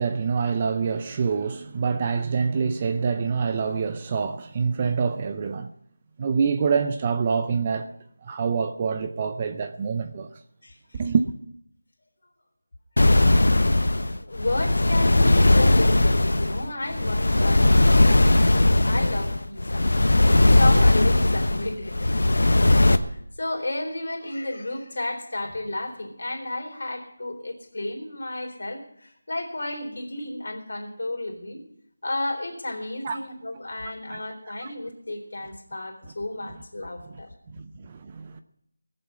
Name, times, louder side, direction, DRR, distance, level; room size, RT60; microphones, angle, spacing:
voice 1, 0.0-5.7 6.2-7.9 8.2-10.3 10.9-11.2 33.0-33.2 34.1-34.2 34.6-34.7 37.0-37.2 37.5-38.4, right 5 dB, 20° right, 0.5 m, -26 dB
voice 2, 10.6-11.0 14.2-19.9 20.2-31.6 32.0-37.3, left 1 dB, 55° left, 4.0 m, -32 dB
sound 1, 13.0-23.0, left 2 dB, 80° left, 1.1 m, -19 dB
20.0 x 7.7 x 7.3 m
figure-of-eight pair, 175°, 0 cm